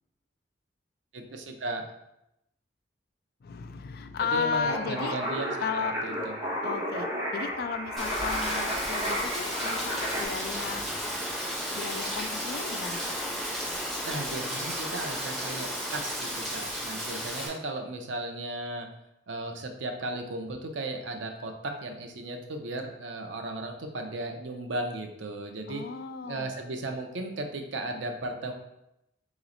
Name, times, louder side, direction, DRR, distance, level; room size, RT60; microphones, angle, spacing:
voice 1, 1.1-1.9 4.2-6.3 14.0-18.9 19.3-25.8 26.2-28.5, right 2 dB, 90° right, 4 dB, 0.6 m, -35 dB
voice 2, 3.4-5.2 5.6-6.0 6.6-7.1 7.3-10.9 11.7-13.1 25.7-26.5, left 6 dB, 55° left, 9 dB, 0.3 m, -34 dB
sound 1, 4.6-10.2, equal, 15° right, 1.4 m, -32 dB
Rain, 8.0-17.5, equal, ahead, 1.1 m, -33 dB
4.0 x 3.1 x 3.8 m, 0.84 s
head